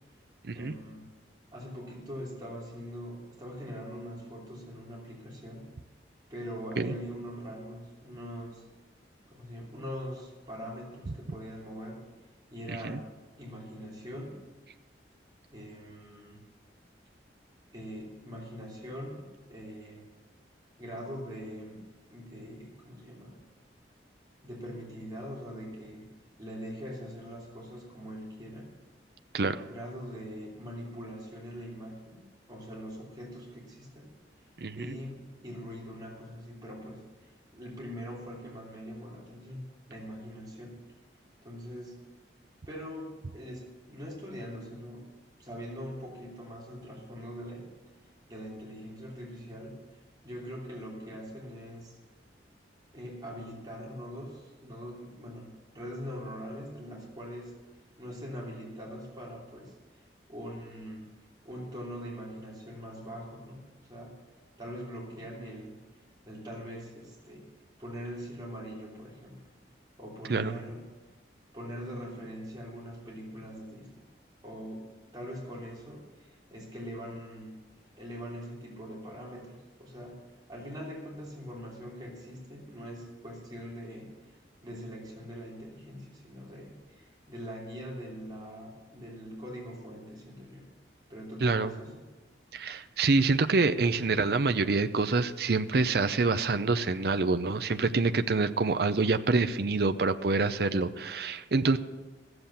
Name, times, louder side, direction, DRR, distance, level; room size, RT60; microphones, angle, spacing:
voice 1, 0.5-1.1 1.5-5.6 6.3-8.6 9.3-12.0 12.5-13.1 13.4-14.4 15.5-16.5 17.7-20.0 20.8-23.4 24.4-26.1 26.4-28.7 29.6-34.1 34.7-39.6 39.9-40.8 41.4-42.0 42.7-45.1 45.4-47.6 48.3-52.0 52.9-57.6 58.0-60.0 60.3-61.1 61.4-63.6 63.9-64.2 64.6-65.8 66.2-67.5 67.8-69.4 70.0-70.9 71.5-73.9 74.4-74.9 75.1-77.6 77.9-80.2 80.5-84.3 84.6-90.7 91.1-92.1, equal, 25° right, -4 dB, 3.1 m, -42 dB
voice 2, 12.7-13.0 29.3-29.6 34.6-34.9 70.3-70.6 91.4-91.7 92.5-101.8, right 3 dB, 60° right, 9 dB, 0.6 m, -26 dB
14.5 x 7.9 x 7.0 m, 1.2 s
head